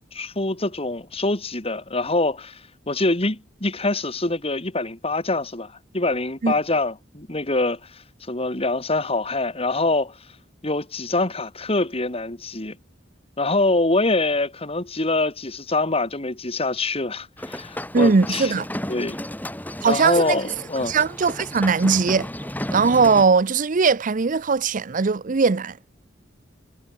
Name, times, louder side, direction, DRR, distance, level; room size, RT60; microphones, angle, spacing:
voice 1, 0.1-2.6 2.9-7.8 8.3-10.1 10.6-12.8 13.4-18.5 18.9-19.2 19.8-21.0, left 2 dB, 35° left, 2.8 m, -24 dB
sound 1, 17.4-23.2, left 1 dB, 10° left, 6.1 m, -33 dB
voice 2, 17.9-18.7 19.8-20.4 20.8-22.3 22.7-25.8, right 4 dB, 45° right, 0.6 m, -19 dB
head